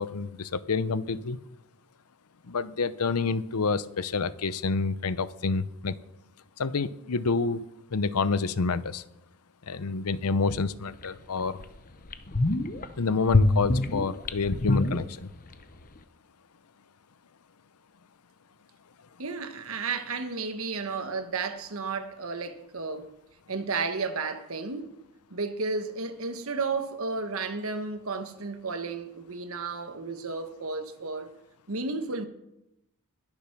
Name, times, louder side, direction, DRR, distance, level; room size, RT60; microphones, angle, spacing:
voice 1, 0.0-1.4 2.5-5.9 6.6-7.6 7.9-9.0 9.7-11.6 13.0-15.3, left 4 dB, 85° left, 0.7 m, -28 dB
sound 1, 11.0-11.1 11.6-11.7 12.1-12.9 13.3-15.5 15.8-15.9, left 2 dB, 40° left, 0.8 m, -25 dB
voice 2, 19.2-23.1 23.5-24.9 25.3-31.3 31.7-32.2, right 4 dB, 65° right, 1.4 m, -33 dB
21.5 x 7.2 x 6.0 m
head